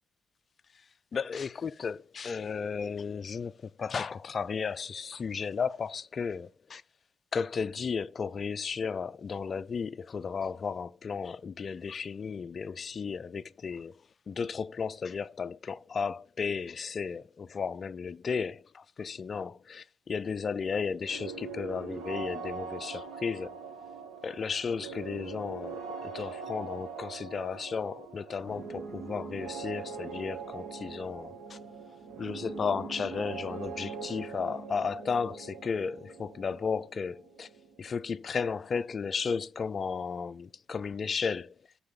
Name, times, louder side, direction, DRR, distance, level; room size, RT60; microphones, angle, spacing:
voice 1, 1.1-6.8 7.3-14.0 14.3-23.6 24.2-31.6 32.2-37.5 37.8-41.5, left 5 dB, 35° left, 0.4 m, -34 dB
sound 1, 21.0-38.7, right 5 dB, 80° right, 1.4 m, -42 dB
7.0 x 4.6 x 6.8 m
cardioid pair, 130°, 0 cm